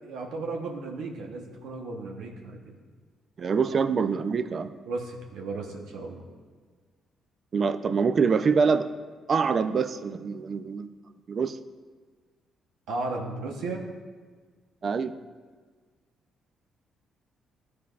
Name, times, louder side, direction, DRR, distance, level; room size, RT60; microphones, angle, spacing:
voice 1, 0.0-2.7 3.7-3.8 4.9-6.2 12.9-13.8, right 3 dB, 80° right, 2 dB, 0.9 m, -35 dB
voice 2, 3.4-4.7 7.5-8.9 9.3-10.9 11.3-11.6 14.8-15.1, right 5 dB, 45° right, 12 dB, 0.3 m, -25 dB
12.0 x 4.7 x 2.4 m, 1.5 s
cardioid pair, 90°, 0 cm